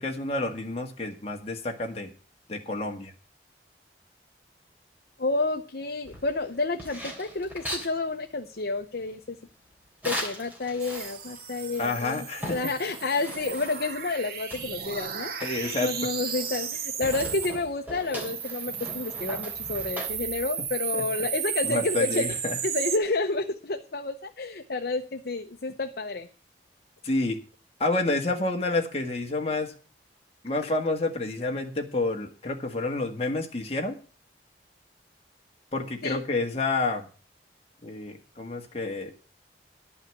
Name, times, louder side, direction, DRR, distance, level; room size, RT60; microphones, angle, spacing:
voice 1, 0.0-2.1 2.5-3.1 11.8-12.7 15.4-15.9 20.9-21.0 21.6-22.6 27.0-27.4 27.8-29.7 30.4-33.9 35.7-37.1 37.8-39.1, left 2 dB, 35° left, 2 dB, 1.7 m, -29 dB
voice 2, 5.2-9.4 10.0-22.4 22.6-26.3 36.0-36.2, left 3 dB, 60° left, 4 dB, 0.8 m, -30 dB
sound 1, 6.0-7.9 10.0-11.4 11.8-11.9 12.1-14.0 14.5-16.8 17.0-20.1, equal, 10° right, 3.3 m, -39 dB
sound 2, 10.8-17.6 18.0-23.0, right 7 dB, 55° right, 1.1 m, -34 dB
11.0 x 5.7 x 8.3 m, 0.38 s
head